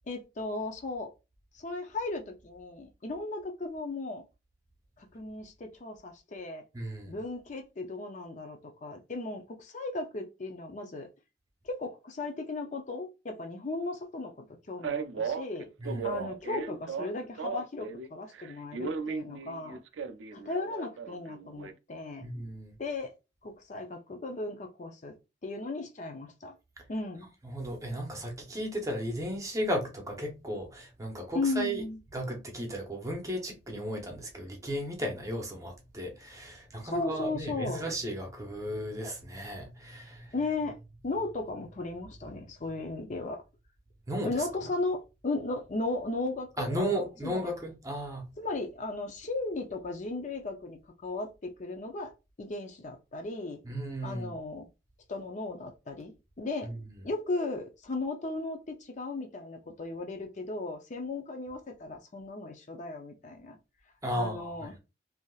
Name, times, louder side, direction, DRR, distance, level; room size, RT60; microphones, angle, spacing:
voice 1, 0.1-1.1 1.5-4.2 5.0-6.6 7.1-11.1 11.6-15.7 16.0-19.8 20.3-22.3 22.8-23.1 23.4-25.1 25.4-26.5 26.9-27.3 31.3-32.0 36.8-37.8 40.3-40.8 41.0-43.4 44.2-47.4 48.4-52.1 52.4-53.6 54.0-54.7 55.1-56.7 57.0-63.6 64.1-64.7, left 2 dB, 40° left, 0.5 m, -36 dB
voice 2, 6.7-7.2 15.8-16.2 22.2-22.7 27.4-31.8 32.1-40.3 44.1-44.7 46.6-48.3 53.6-54.4 56.6-56.8 64.0-64.8, equal, 15° right, 0.7 m, -35 dB
Male speech man speaking, 14.8-18.1 18.3-21.7, right 5 dB, 75° right, 0.4 m, -36 dB
3.4 x 2.6 x 2.3 m
head